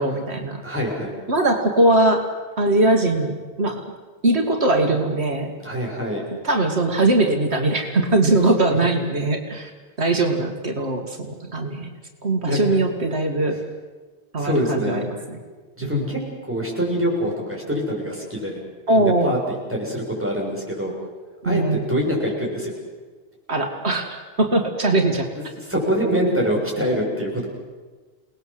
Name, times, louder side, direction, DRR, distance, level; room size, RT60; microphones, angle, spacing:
voice 1, 0.0-0.8 1.3-2.3 2.6-3.8 4.2-5.5 6.4-9.7 10.0-11.9 12.2-13.6 14.3-15.4 15.8-16.1 18.9-19.4 21.4-21.9 23.5-25.3, right 2 dB, 85° right, 4 dB, 2.5 m, -21 dB
voice 2, 0.6-1.2 5.6-6.2 12.4-12.8 14.4-15.0 15.8-18.6 18.9-20.9 21.4-22.7 25.4-27.5, equal, 10° right, -3 dB, 7.2 m, -25 dB
29.5 x 19.5 x 7.8 m, 1.4 s
omnidirectional pair, 1.1 m